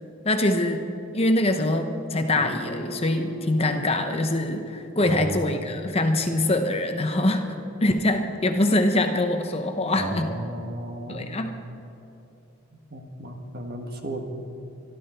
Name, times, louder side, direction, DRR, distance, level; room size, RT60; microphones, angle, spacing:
voice 1, 0.2-0.8 1.1-7.4 7.8-10.3 11.1-11.5, left 1 dB, 25° left, 6 dB, 0.8 m, -24 dB
Guitar, 2.3-7.8, equal, 5° right, 2.5 m, -42 dB
voice 2, 5.0-5.6 9.9-11.3 12.7-14.2, right 1 dB, 45° right, 3 dB, 1.6 m, -34 dB
25.5 x 12.0 x 4.5 m, 2.9 s
head